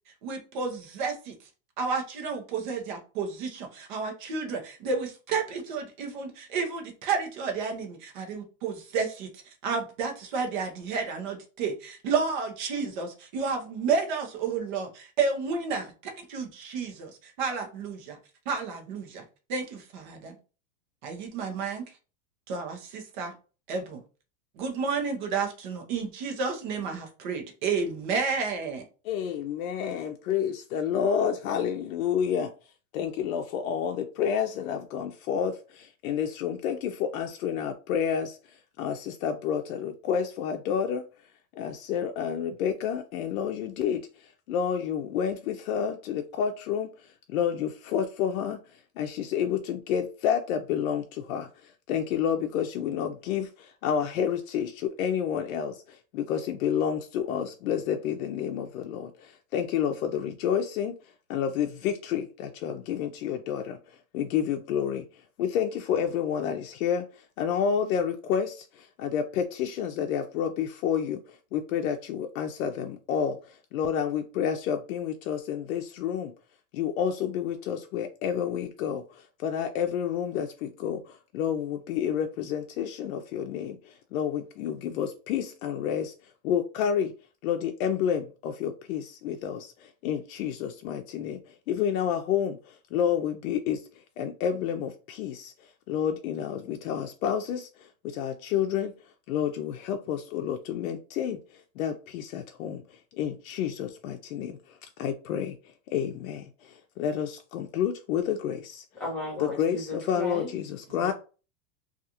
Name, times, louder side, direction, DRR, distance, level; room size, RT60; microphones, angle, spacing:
voice 1, 0.2-1.3 1.8-9.3 9.6-15.9 16.3-18.2 18.5-19.2 19.5-20.3 21.0-21.8 22.5-23.3 23.7-24.0 24.6-28.8 111.0-111.1, right 5 dB, 35° right, 0.6 m, -31 dB
voice 2, 29.0-32.5 32.9-41.0 41.5-60.9 61.3-65.0 65.4-76.3 76.7-86.1 86.4-87.1 87.4-93.8 94.2-98.9 99.3-108.8 109.4-111.1, left 8 dB, 90° left, 0.5 m, -30 dB
voice 3, 108.9-110.5, left 1 dB, 5° left, 0.8 m, -34 dB
2.4 x 2.4 x 2.8 m
supercardioid pair, 180°, 41 cm